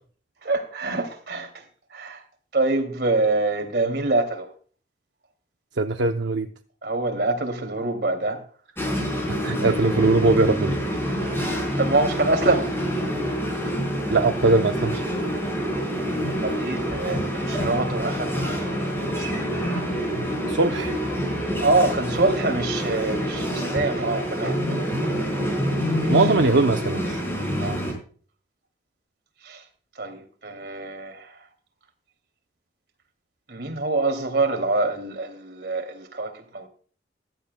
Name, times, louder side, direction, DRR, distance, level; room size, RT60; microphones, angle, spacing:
voice 1, 0.4-1.6 1.9-2.2 2.5-4.5 6.8-8.4 11.2-12.7 13.7-13.8 16.3-19.4 21.6-24.9 26.0-26.1 27.6-27.8 29.4-29.6 30.0-31.4 33.5-36.7, right 2 dB, 70° right, 2.5 m, -25 dB
voice 2, 5.8-6.5 9.4-10.8 14.1-15.0 20.1-21.0 24.9-25.3 26.1-27.2, right 3 dB, 90° right, 0.7 m, -21 dB
sound 1, 8.8-27.9, equal, 15° left, 4.6 m, -26 dB
15.0 x 13.0 x 2.2 m
head